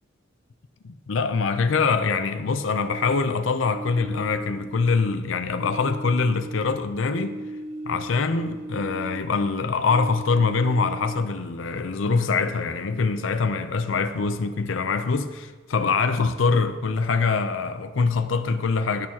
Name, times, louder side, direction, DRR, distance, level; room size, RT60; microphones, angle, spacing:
voice 1, 0.8-7.4 7.9-19.1, left 4 dB, 80° left, 0.6 m, -24 dB
sound 1, 2.7-5.2 5.5-9.4 9.8-11.4, right 1 dB, 35° right, 1.2 m, -38 dB
17.0 x 6.7 x 2.9 m
head